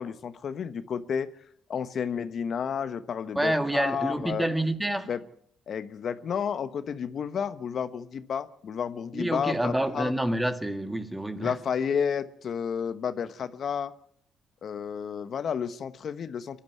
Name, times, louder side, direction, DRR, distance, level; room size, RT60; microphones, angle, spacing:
voice 1, 0.0-1.3 1.7-4.5 5.1-5.2 5.7-10.1 11.4-13.9 14.6-16.6, left 7 dB, 55° left, 1.1 m, -31 dB
voice 2, 3.4-5.1 9.1-11.5, right 1 dB, 10° right, 1.8 m, -28 dB
24.0 x 11.5 x 9.4 m
cardioid pair, 90°, 0 cm